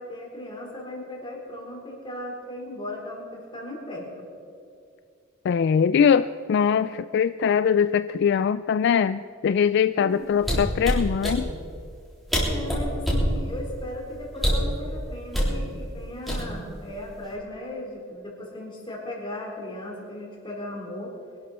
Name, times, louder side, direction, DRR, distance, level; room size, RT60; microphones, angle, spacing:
voice 1, 0.0-4.3 10.0-10.3 12.5-21.1, left 1 dB, 25° left, -2 dB, 4.1 m, -37 dB
voice 2, 5.4-11.5, left 7 dB, 60° left, 13 dB, 0.3 m, -22 dB
sound 1, 10.4-11.4 12.0-12.1 12.3-13.3 14.4-14.7 15.3-15.6 16.3-16.7 17.1-17.4, equal, ahead, 3.7 m, -24 dB
23.5 x 12.0 x 4.3 m, 2.4 s
head